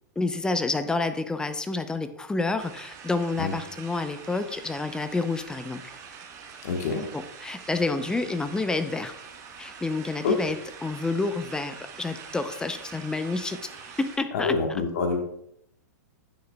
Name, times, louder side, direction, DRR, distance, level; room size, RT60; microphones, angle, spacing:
voice 1, 0.2-5.8 7.1-9.1 9.6-13.7 14.0-14.6, left 3 dB, 10° left, 10 dB, 0.5 m, -29 dB
sound 1, 2.6-14.2, right 6 dB, 35° right, 1.3 m, -45 dB
voice 2, 6.6-7.1 10.2-10.3 14.3-15.2, left 4 dB, 60° left, 3 dB, 1.2 m, -26 dB
9.6 x 6.5 x 2.2 m, 0.76 s
hypercardioid pair, 110°, 10 cm